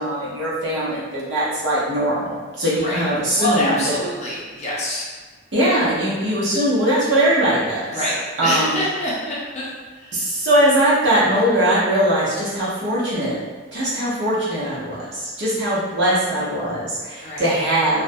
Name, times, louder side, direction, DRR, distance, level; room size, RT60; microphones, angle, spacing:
voice 1, 0.0-3.9 5.5-7.8 8.4-8.8 10.1-13.4 13.7-18.0, right 1 dB, 65° right, -9 dB, 0.7 m, -20 dB
voice 2, 3.3-5.1 7.9-9.7 9.9-10.3 17.2-17.5, equal, 35° left, -6 dB, 0.5 m, -25 dB
2.3 x 2.1 x 2.5 m, 1.4 s
head